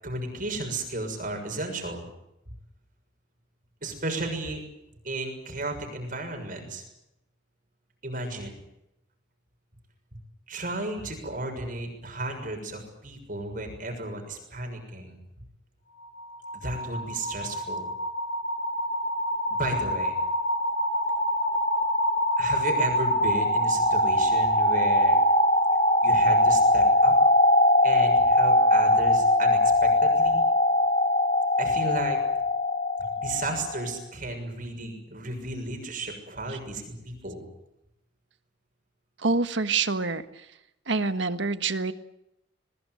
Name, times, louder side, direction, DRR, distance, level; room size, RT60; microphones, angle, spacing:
voice 1, 0.0-2.1 3.8-4.6 5.0-6.8 8.0-8.6 10.5-15.2 16.5-17.9 19.5-20.2 22.4-25.2 26.0-27.1 27.8-30.4 31.6-32.2 33.0-37.5, right 2 dB, 45° right, 4 dB, 6.7 m, -34 dB
sound 1, 16.0-33.9, left 1 dB, 35° left, 4.1 m, -23 dB
voice 2, 39.2-40.4 40.9-41.9, right 3 dB, 75° right, 10 dB, 1.6 m, -26 dB
22.0 x 21.5 x 9.3 m, 0.85 s
head